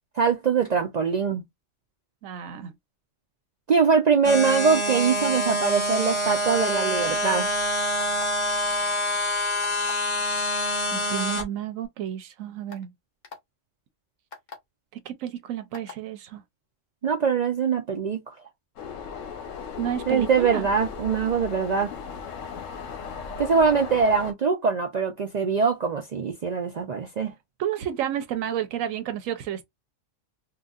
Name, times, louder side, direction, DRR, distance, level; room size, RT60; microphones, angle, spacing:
voice 1, 0.2-1.4 3.7-7.5 17.0-18.3 20.1-21.9 23.4-27.3, right 5 dB, 70° right, 0.4 m, -23 dB
voice 2, 2.2-2.7 10.9-12.9 14.9-16.4 19.8-20.7 27.6-29.6, right 10 dB, 90° right, 1.0 m, -31 dB
sound 1, 4.2-11.4, equal, 25° left, 1.0 m, -26 dB
sound 2, 8.0-8.5 9.6-10.1 11.2-11.4 12.2-12.3 12.7-12.8 13.2-13.4 14.3-14.6 15.7-16.0, left 5 dB, 50° left, 1.0 m, -41 dB
sound 3, 18.8-24.3, left 6 dB, 75° left, 1.1 m, -37 dB
3.8 x 2.3 x 2.3 m
omnidirectional pair, 1.3 m